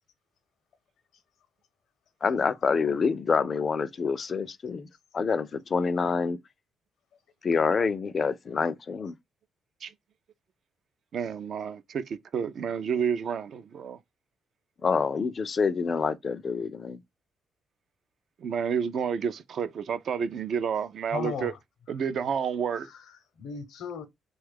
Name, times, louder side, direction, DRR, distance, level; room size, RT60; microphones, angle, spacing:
voice 1, 2.2-4.9 5.1-6.4 7.4-9.2 14.8-17.0, left 5 dB, 40° left, 0.4 m, -27 dB
voice 2, 7.5-7.8 21.1-21.6 21.9-22.1 22.8-24.0, left 6 dB, 80° left, 0.7 m, -39 dB
voice 3, 11.1-14.0 18.4-21.5 21.9-22.9, right 7 dB, 60° right, 0.4 m, -30 dB
3.1 x 2.3 x 3.3 m
cardioid pair, 90°, 0 cm